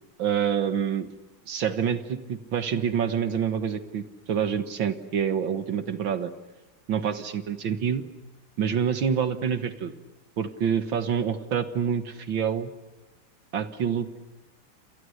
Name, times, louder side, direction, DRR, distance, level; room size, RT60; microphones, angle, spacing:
voice 1, 0.2-1.1 1.5-6.3 6.9-8.0 8.6-9.9 10.4-12.7 13.5-14.2, right 8 dB, 65° right, 10 dB, 2.1 m, -27 dB
29.5 x 27.5 x 6.6 m, 1.0 s
omnidirectional pair, 2.3 m